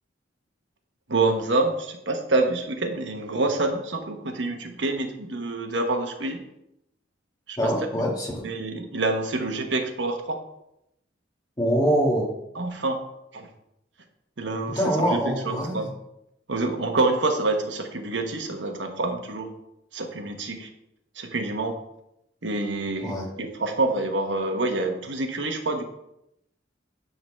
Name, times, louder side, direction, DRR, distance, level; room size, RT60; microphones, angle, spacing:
voice 1, 1.1-6.4 7.5-7.6 8.4-10.4 12.5-13.0 13.3-13.5 14.4-15.9 16.5-19.5 19.9-20.7 21.1-21.7 22.4-25.9, right 2 dB, 70° right, 4 dB, 1.2 m, -27 dB
voice 2, 7.6-8.5 11.6-12.4 14.8-15.9 23.0-23.3, equal, 20° left, -2 dB, 2.2 m, -24 dB
10.5 x 4.0 x 6.5 m, 0.82 s
head